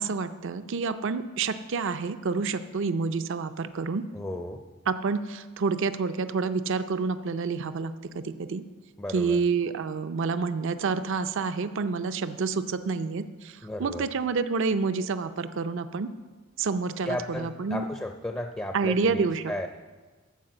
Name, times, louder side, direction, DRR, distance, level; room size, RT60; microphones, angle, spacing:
voice 1, 0.0-4.0 4.9-8.6 9.1-16.1 16.6-17.8 18.7-19.4, right 4 dB, 60° right, 11 dB, 0.5 m, -28 dB
voice 2, 4.1-4.6 9.0-9.4 13.6-14.1 17.0-19.7, left 1 dB, 10° left, 5 dB, 0.5 m, -34 dB
13.5 x 4.8 x 7.6 m, 1.4 s
head